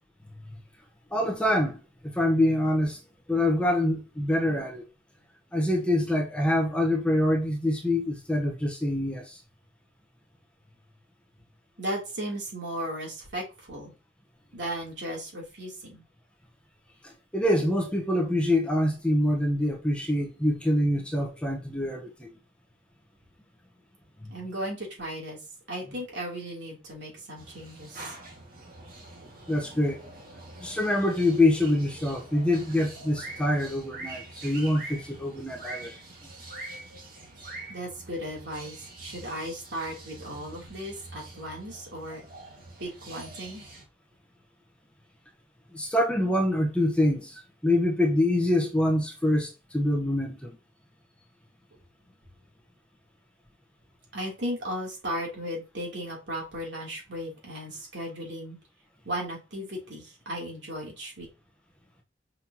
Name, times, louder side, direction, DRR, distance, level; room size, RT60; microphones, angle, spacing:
voice 1, 1.1-1.8 2.0-3.0 3.3-4.8 5.5-9.4 17.0-22.3 24.2-24.3 29.5-30.0 30.6-35.9 45.7-50.6, left 1 dB, 5° left, 1.1 m, -25 dB
voice 2, 11.8-13.9 14.5-16.0 24.3-25.4 25.7-28.1 36.5-37.0 37.4-42.2 42.8-43.6 54.1-58.6 59.0-61.3, equal, 70° right, 3.4 m, -36 dB
sound 1, 27.4-43.8, right 2 dB, 50° right, 2.1 m, -45 dB
6.4 x 5.6 x 3.0 m
head